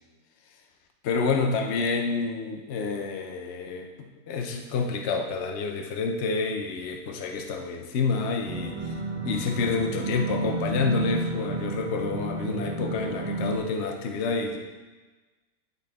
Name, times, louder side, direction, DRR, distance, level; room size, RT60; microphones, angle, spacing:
voice 1, 1.0-9.0 9.2-14.6, left 4 dB, 55° left, 3 dB, 0.9 m, -28 dB
sound 1, 8.4-13.6, right 2 dB, 30° right, 0.6 m, -31 dB
11.5 x 4.7 x 3.5 m, 1.2 s
omnidirectional pair, 1.6 m